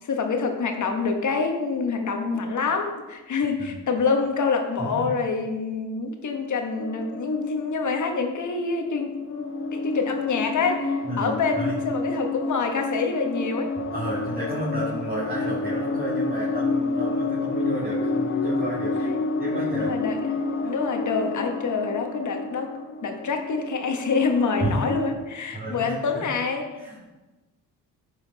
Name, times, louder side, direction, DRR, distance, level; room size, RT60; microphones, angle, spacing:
voice 1, 0.0-13.7 19.0-19.3 19.7-20.2 20.6-22.7 23.0-26.6, left 4 dB, 50° left, 4 dB, 1.3 m, -26 dB
sound 1, 6.8-8.7 9.1-25.2, left 3 dB, 35° left, 0.6 m, -29 dB
voice 2, 11.0-11.7 13.9-19.1 19.4-19.9 24.6-24.9 25.5-25.9 26.8-27.0, right 1 dB, 25° right, -6 dB, 2.3 m, -31 dB
10.0 x 5.0 x 4.1 m, 1.1 s
supercardioid pair, 65°, 37 cm